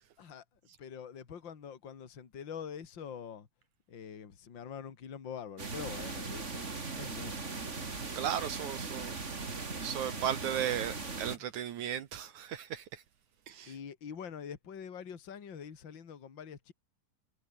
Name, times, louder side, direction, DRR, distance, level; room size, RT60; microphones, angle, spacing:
voice 1, 0.8-3.5 3.9-6.7 6.9-7.5 11.4-11.5 13.7-16.7, left 7 dB, 40° left, 2.8 m, -45 dB
sound 1, 5.6-11.4, right 4 dB, 25° right, 2.4 m, -39 dB
voice 2, 8.2-9.1 9.8-12.8 13.5-13.7, right 10 dB, 70° right, 2.7 m, -35 dB
omnidirectional pair, 3.6 m